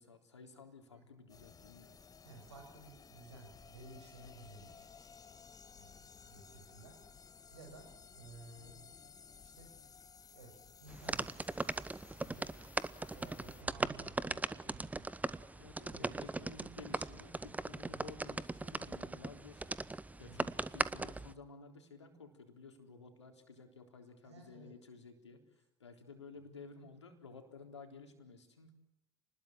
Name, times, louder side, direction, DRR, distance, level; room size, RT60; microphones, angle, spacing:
voice 1, 0.0-2.0 15.5-19.8 20.2-28.7, left 4 dB, 85° left, 5 dB, 3.8 m, -54 dB
sound 1, 1.3-13.6, left 6 dB, 25° left, 1.4 m, -57 dB
voice 2, 2.2-4.7 5.7-7.0 7.5-8.8 9.4-9.7 10.3-10.5 10.8-11.3 12.2-12.5 13.0-15.1 15.8-16.3 17.9-18.1 20.2-20.5 24.2-24.7, right 2 dB, 80° right, 3 dB, 6.6 m, -55 dB
sound 2, 10.9-21.3, right 2 dB, 10° right, 1.1 m, -39 dB
29.5 x 20.5 x 7.7 m, 0.87 s
figure-of-eight pair, 65°, 14 cm